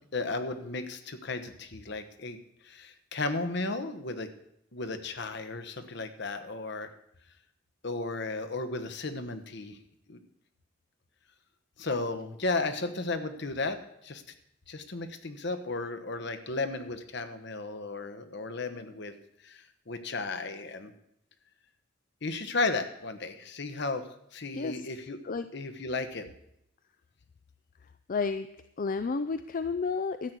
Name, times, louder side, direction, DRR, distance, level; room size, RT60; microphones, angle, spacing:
voice 1, 0.1-2.4 2.6-4.3 4.7-6.9 7.8-9.8 10.1-10.2 11.8-13.8 14.0-14.2 14.7-19.1 19.4-20.9 22.2-24.0 24.3-25.2 25.5-26.3, left 3 dB, 65° left, 9 dB, 1.2 m, -34 dB
voice 2, 24.5-24.9 25.2-25.5 28.1-28.5 28.8-30.4, left 4 dB, 45° left, 11 dB, 0.5 m, -31 dB
13.0 x 6.2 x 8.2 m, 0.77 s
head